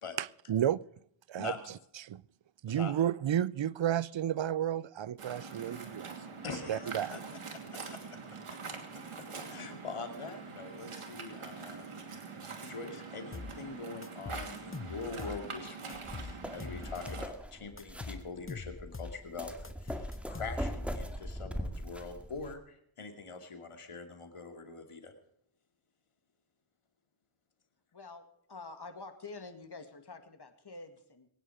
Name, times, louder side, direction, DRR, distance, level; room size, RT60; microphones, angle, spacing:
voice 1, 0.2-0.8 1.3-1.5 2.0-2.2 2.6-6.1 6.7-7.1, right 10 dB, 65° right, 0.6 m, -31 dB
Waves surf, 5.2-17.3, right 4 dB, 85° right, 2.8 m, -44 dB
voice 2, 6.4-8.2 8.7-8.8 9.5-12.0 12.6-25.1, left 4 dB, 85° left, 2.6 m, -44 dB
sound 1, 13.3-13.6 14.0-15.5 15.9-17.3 17.8-19.2 19.6-20.9, left 4 dB, 25° left, 1.0 m, -43 dB
sound 2, 15.9-22.5, equal, ahead, 2.1 m, -41 dB
voice 3, 27.9-31.3, left 3 dB, 50° left, 2.3 m, -47 dB
22.5 x 10.0 x 4.9 m
wide cardioid pair, 60°, 50 cm